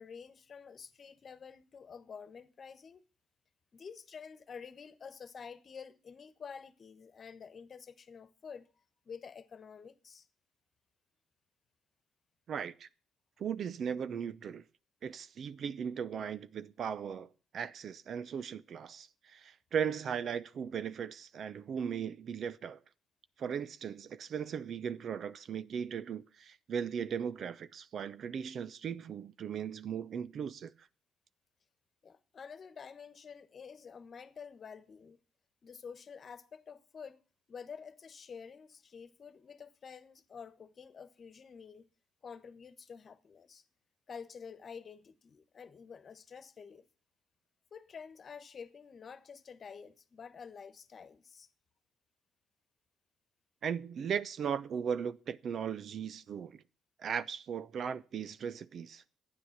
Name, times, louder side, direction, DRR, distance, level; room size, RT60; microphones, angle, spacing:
voice 1, 0.0-3.0 3.7-8.7 9.0-10.3 32.0-35.2 35.6-37.2 37.5-41.8 42.2-43.6 44.1-46.8 47.7-51.5, left 6 dB, 45° left, 1.2 m, -49 dB
voice 2, 12.5-12.9 13.4-14.6 15.0-17.3 17.5-22.8 23.4-30.7 53.6-56.6 57.0-59.0, right 7 dB, 60° right, 0.7 m, -37 dB
12.5 x 9.8 x 7.3 m
cardioid pair, 90°, 0 cm